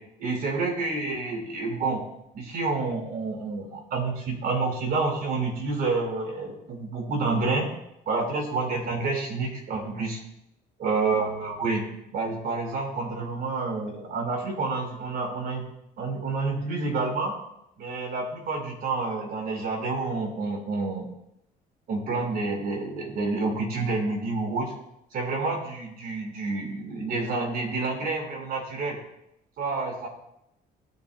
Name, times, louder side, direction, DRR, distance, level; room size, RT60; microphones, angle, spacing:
voice 1, 0.2-2.0 2.3-7.7 8.1-10.2 10.8-11.8 12.1-15.6 16.0-17.3 17.8-21.1 21.9-24.7 25.1-29.0 29.6-30.1, right 3 dB, 65° right, 1 dB, 4.9 m, -28 dB
21.0 x 10.5 x 2.2 m, 0.80 s
cardioid pair, 110°, 17 cm